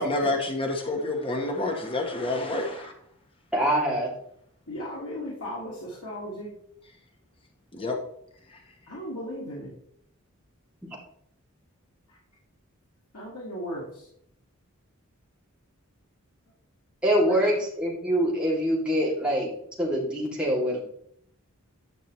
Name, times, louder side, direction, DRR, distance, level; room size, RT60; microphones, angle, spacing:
voice 1, 0.0-2.9 7.7-7.9, left 2 dB, 25° left, 2 dB, 1.0 m, -28 dB
voice 2, 3.5-4.1 17.0-19.5 19.8-20.8, equal, 5° right, -5 dB, 2.3 m, -24 dB
voice 3, 4.7-6.5 8.9-9.7 13.1-14.1 17.3-17.6, equal, 85° left, -5 dB, 2.0 m, -36 dB
9.7 x 5.9 x 3.0 m, 0.70 s
head